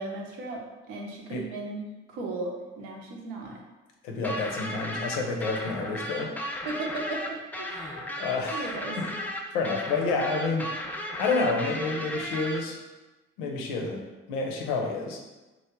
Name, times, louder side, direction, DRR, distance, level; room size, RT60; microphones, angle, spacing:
voice 1, 0.0-1.8 2.1-3.6 6.7-8.1 8.5-9.0, right 2 dB, 65° right, 0 dB, 0.7 m, -36 dB
voice 2, 4.0-6.3 8.2-8.6 9.0-9.1 9.5-10.7 11.2-12.8 13.4-14.0 14.3-15.2, left 3 dB, 70° left, 1 dB, 0.6 m, -29 dB
sound 1, 4.2-12.6, left 1 dB, 5° left, 0.3 m, -35 dB
3.0 x 2.1 x 3.6 m, 1.1 s
figure-of-eight pair, 45°, 36 cm